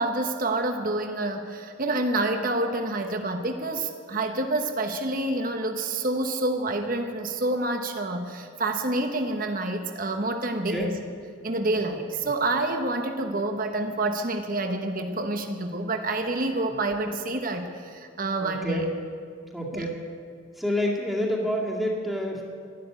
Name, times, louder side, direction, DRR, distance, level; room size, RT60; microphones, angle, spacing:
voice 1, 0.0-10.9 11.4-18.8 19.7-19.9, right 2 dB, 40° right, 5 dB, 1.1 m, -28 dB
voice 2, 18.4-18.9 19.5-20.0 20.5-22.4, left 1 dB, ahead, -4 dB, 2.2 m, -28 dB
12.5 x 12.5 x 8.8 m, 2.2 s
head